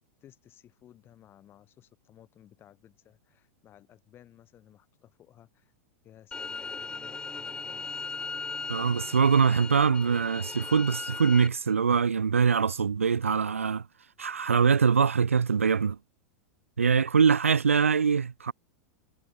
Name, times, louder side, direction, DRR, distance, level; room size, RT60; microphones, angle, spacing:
voice 1, 0.2-5.7 6.0-7.9, left 11 dB, 35° left, 7.0 m, -56 dB
sound 1, 6.3-11.5, left 4 dB, 10° left, 0.4 m, -38 dB
Bowed string instrument, 6.7-10.8, right 7 dB, 20° right, 7.4 m, -55 dB
voice 2, 8.7-13.8 14.2-16.0 16.8-18.5, right 6 dB, 90° right, 0.4 m, -23 dB
hypercardioid pair, 100°, 7 cm